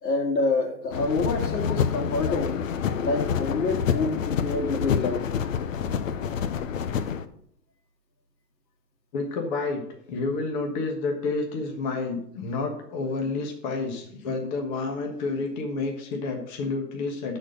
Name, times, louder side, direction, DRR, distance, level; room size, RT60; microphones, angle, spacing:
voice 1, 0.0-2.5 3.0-5.2, left 3 dB, 80° left, 3 dB, 2.5 m, -27 dB
Recorder in pocket, 0.9-7.3, left 7 dB, 50° left, 0.8 m, -27 dB
voice 2, 9.1-9.8 10.1-17.4, left 3 dB, 25° left, 2 dB, 1.3 m, -29 dB
11.5 x 4.4 x 6.5 m, 0.69 s
hypercardioid pair, 160°, 49 cm